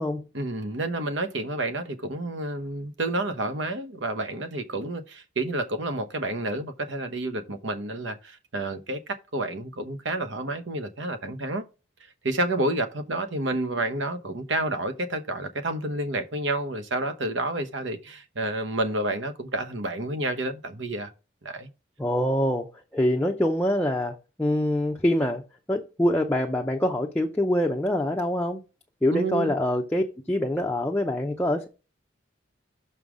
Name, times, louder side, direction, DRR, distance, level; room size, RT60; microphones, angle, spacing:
voice 1, 0.3-11.6 12.2-21.1 21.4-21.7 29.1-29.5, right 2 dB, 65° right, 1.0 m, -29 dB
voice 2, 22.0-22.7 22.9-25.4 25.7-28.6 29.0-31.7, left 1 dB, 10° left, 0.6 m, -25 dB
6.3 x 5.5 x 4.9 m
head